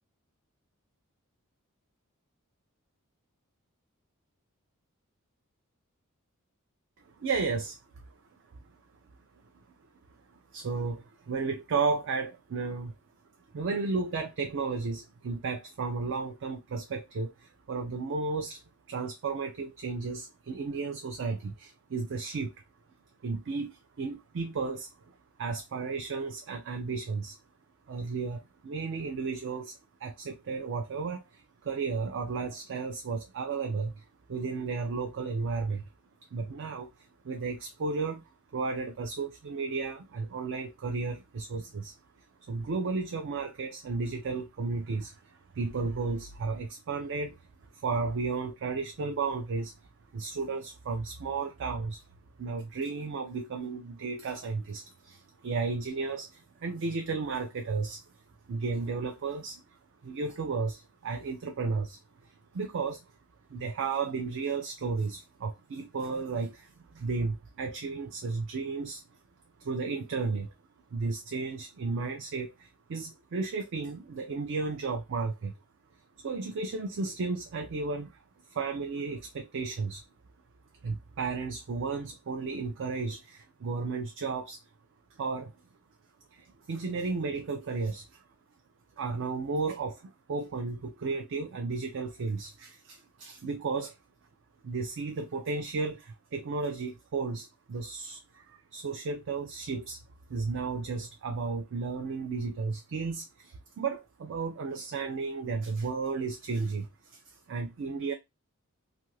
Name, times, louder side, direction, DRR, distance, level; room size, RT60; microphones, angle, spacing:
voice 1, 7.1-8.0 10.5-13.0 13.5-18.6 18.9-22.5 23.2-27.4 27.9-35.9 36.3-36.9 37.2-38.2 38.5-41.9 42.5-49.7 50.1-52.0 52.4-58.0 58.5-59.6 60.0-63.1 63.5-69.0 69.6-70.5 70.9-75.5 76.2-78.2 78.5-80.0 80.8-84.6 85.1-85.5 86.3-88.2 89.0-94.0 94.6-100.0 100.3-108.1, right 4 dB, 55° right, 0.4 m, -34 dB
2.7 x 2.4 x 3.0 m
head